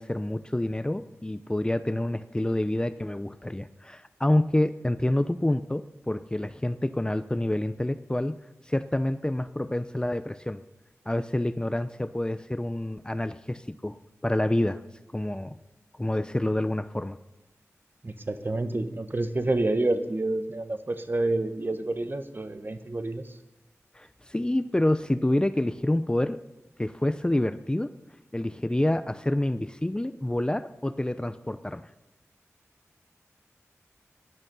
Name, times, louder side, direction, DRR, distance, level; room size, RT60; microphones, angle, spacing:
voice 1, 0.0-8.4 8.7-10.6 11.1-14.0 14.2-14.8 15.1-15.6 16.0-17.2 23.9-26.4 26.8-27.9 28.3-31.9, left 1 dB, 15° left, 13 dB, 0.6 m, -27 dB
voice 2, 18.0-23.3, right 2 dB, 40° right, 9 dB, 1.3 m, -28 dB
17.5 x 11.5 x 5.4 m, 1.0 s
wide cardioid pair, 60°, 5 cm